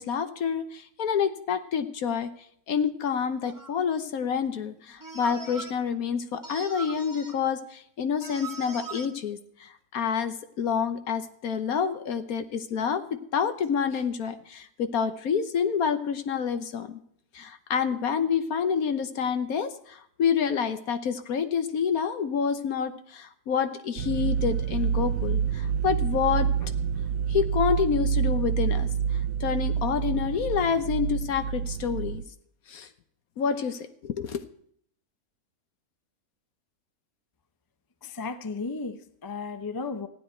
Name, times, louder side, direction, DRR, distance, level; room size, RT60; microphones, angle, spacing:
voice 1, 0.0-2.3 2.7-13.0 13.3-17.0 17.3-26.7 27.3-28.9 29.4-32.2 32.7-32.9 33.4-34.4, left 7 dB, 70° left, 10 dB, 1.4 m, -28 dB
sound 1, 3.4-3.8 5.0-5.7 6.4-7.4 8.2-9.1, right 4 dB, 15° right, 1.0 m, -40 dB
sound 2, 24.0-32.2, right 7 dB, 80° right, 1.2 m, -27 dB
voice 2, 38.0-40.1, left 4 dB, 25° left, 10 dB, 0.5 m, -34 dB
15.0 x 10.0 x 4.4 m, 0.66 s
omnidirectional pair, 1.6 m